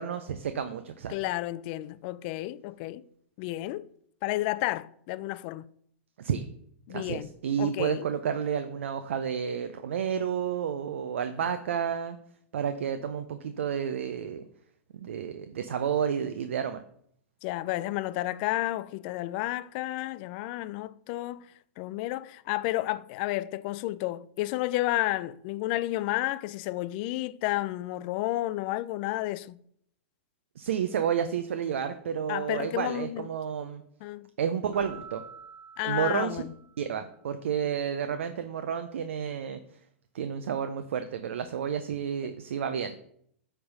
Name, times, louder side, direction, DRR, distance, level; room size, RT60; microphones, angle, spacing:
voice 1, 0.0-1.1 6.2-6.4 6.9-12.2 12.5-14.4 14.9-16.8 30.6-33.8 34.4-35.2 35.8-36.4 36.8-39.6 40.1-43.0, right 8 dB, 75° right, 0.6 m, -31 dB
voice 2, 1.1-3.0 3.4-3.9 4.2-5.7 6.9-7.3 7.6-8.1 11.4-11.6 17.4-21.5 21.8-29.6 32.3-33.3 34.0-34.3 35.8-36.5, left 17 dB, 45° left, 0.4 m, -31 dB
Keyboard (musical), 34.7-37.1, right 6 dB, 50° right, 3.4 m, -49 dB
8.6 x 3.5 x 5.4 m
hypercardioid pair, 110°, 7 cm